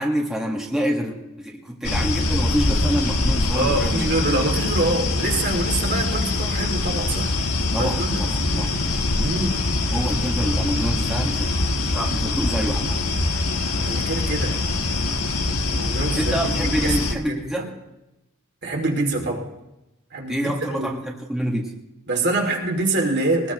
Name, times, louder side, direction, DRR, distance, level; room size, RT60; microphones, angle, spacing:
voice 1, 0.0-4.1 7.7-9.1 9.9-11.5 11.8-13.0 16.2-17.7 20.3-21.7, equal, ahead, -2 dB, 1.6 m, -27 dB
sound 1, 1.8-17.1, left 2 dB, 80° left, 1.4 m, -23 dB
voice 2, 3.5-7.3 7.8-8.2 9.2-9.6 13.7-14.6 15.6-16.4 16.8-17.7 18.6-19.4 20.1-20.9 22.1-23.5, right 2 dB, 50° right, 0 dB, 2.6 m, -25 dB
22.0 x 20.0 x 3.1 m, 0.94 s
head